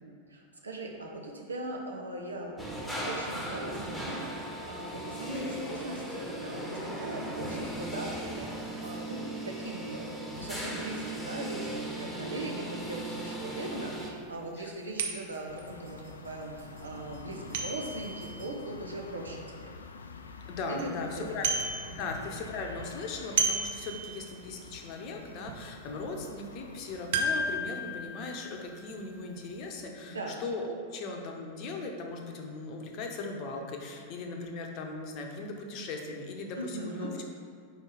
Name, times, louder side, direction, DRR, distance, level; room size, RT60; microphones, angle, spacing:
voice 1, 0.0-19.7 20.7-20.9 21.1-21.3 21.9-22.1 30.1-30.3 36.6-37.1, right 2 dB, 75° right, 0 dB, 0.9 m, -40 dB
sound 1, 2.6-14.1, right 1 dB, 5° left, 1.2 m, -38 dB
sound 2, 13.5-13.6 14.1-14.2 15.0-19.7 20.1-20.2 20.5-20.9 21.2-22.3 22.6-24.5 24.9-25.0 25.5-25.7 27.1-29.5 29.8-29.9, right 3 dB, 55° right, 0.6 m, -34 dB
sound 3, 15.5-27.1, left 4 dB, 70° left, 0.3 m, -47 dB
voice 2, 20.5-21.5 22.0-37.2, left 3 dB, 40° left, 2 dB, 0.8 m, -38 dB
4.9 x 4.5 x 5.0 m, 2.3 s
figure-of-eight pair, 90°, 0 cm